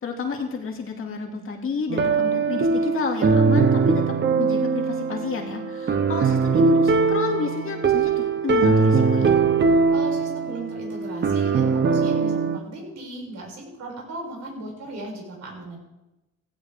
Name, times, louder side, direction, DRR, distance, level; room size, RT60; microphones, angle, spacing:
voice 1, 0.0-9.4, left 5 dB, 45° left, 1 dB, 2.5 m, -30 dB
sound 1, 1.9-12.6, right 4 dB, 35° right, 0.9 m, -21 dB
voice 2, 9.9-15.8, right 1 dB, 60° right, -2 dB, 6.6 m, -36 dB
17.0 x 16.5 x 3.7 m, 0.97 s
cardioid pair, 145°, 30 cm